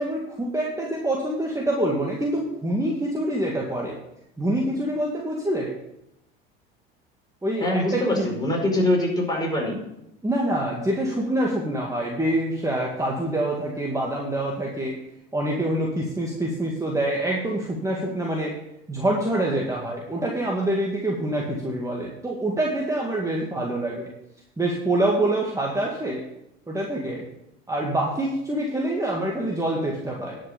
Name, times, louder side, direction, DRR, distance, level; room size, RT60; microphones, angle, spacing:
voice 1, 0.0-3.9 4.4-5.7 7.4-8.4 10.2-15.0 15.3-18.6 18.9-24.1 24.6-26.2 26.7-27.2 27.7-30.4, right 1 dB, 10° right, -2 dB, 2.2 m, -26 dB
voice 2, 7.6-9.8, left 1 dB, 15° left, -2 dB, 5.1 m, -23 dB
11.0 x 6.3 x 6.9 m, 0.83 s
hypercardioid pair, 80°, 29 cm